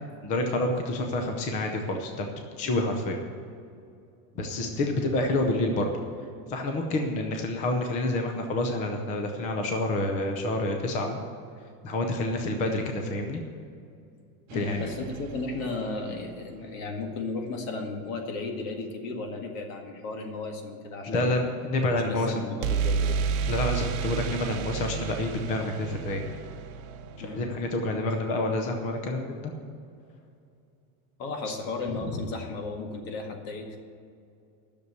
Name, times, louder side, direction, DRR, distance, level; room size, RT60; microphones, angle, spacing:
voice 1, 0.2-2.3 2.6-3.2 4.3-5.9 6.5-11.2 11.8-13.4 14.5-14.9 21.1-22.3 23.5-26.2 27.4-29.5 31.5-31.6, left 2 dB, 15° left, 4 dB, 0.5 m, -28 dB
voice 2, 14.5-21.4 22.0-23.2 27.2-27.5 31.2-33.8, left 3 dB, 60° left, 3 dB, 2.0 m, -35 dB
sound 1, 14.5-16.5 22.6-28.4, right 6 dB, 45° right, 0.9 m, -32 dB
11.0 x 6.8 x 8.0 m, 2.5 s
supercardioid pair, 170°, 44 cm